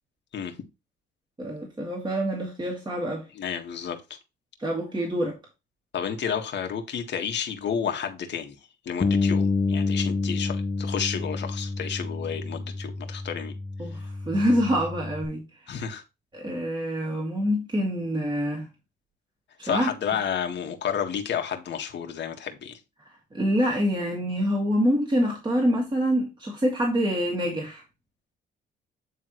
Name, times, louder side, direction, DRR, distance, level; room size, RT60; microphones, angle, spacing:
voice 1, 1.4-3.2 4.6-5.4 13.8-15.8 16.3-18.7 19.6-19.9 23.3-27.8, equal, 25° right, 2.4 m, -26 dB
voice 2, 3.3-4.0 5.9-8.5 8.8-13.5 15.7-16.0 19.6-22.8, left 8 dB, 65° left, 1.7 m, -31 dB
Bass guitar, 9.0-15.3, left 4 dB, 25° left, 1.0 m, -28 dB
9.6 x 3.6 x 3.1 m
cardioid pair, 90°, 20 cm